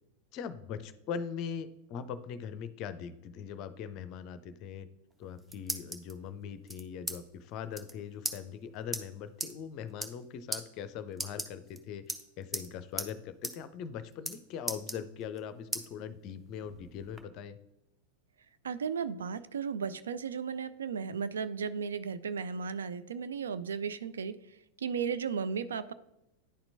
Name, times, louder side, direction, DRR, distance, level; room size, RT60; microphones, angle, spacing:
voice 1, 0.3-4.9 5.2-17.6, left 7 dB, 40° left, 13 dB, 0.5 m, -41 dB
sound 1, 5.1-6.1 6.7-7.2 7.4-7.5 7.7-7.9 8.2-8.4 8.9-9.0 9.4-9.5 9.9-10.2 10.5-10.6 11.1-11.8 12.1-12.7 13.0-13.1 13.4-13.6 13.8-14.4 14.7-15.4 15.7-15.9 16.3-17.2, right 1 dB, 10° right, 0.7 m, -37 dB
voice 2, 18.6-24.4 24.8-25.9, right 6 dB, 65° right, 13 dB, 0.3 m, -35 dB
10.0 x 4.3 x 2.6 m, 0.88 s
figure-of-eight pair, 90°, 0 cm